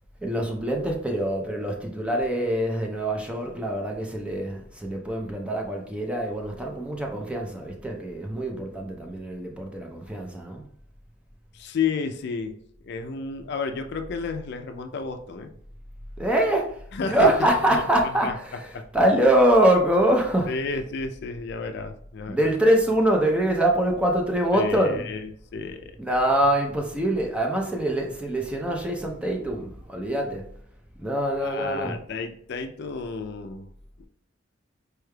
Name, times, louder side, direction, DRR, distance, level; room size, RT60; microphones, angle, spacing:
voice 1, 0.2-10.6 16.2-20.6 22.3-25.0 26.0-30.4 31.0-31.9, right 1 dB, 5° right, 0.5 m, -24 dB
voice 2, 11.5-12.6 12.8-15.5 16.9-17.3 17.7-17.8 18.2-18.3 18.7-18.8 20.5-22.4 24.5-25.2 25.5-26.0 31.4-33.7 34.0-34.1, left 5 dB, 60° left, 0.4 m, -31 dB
4.5 x 3.3 x 2.2 m
head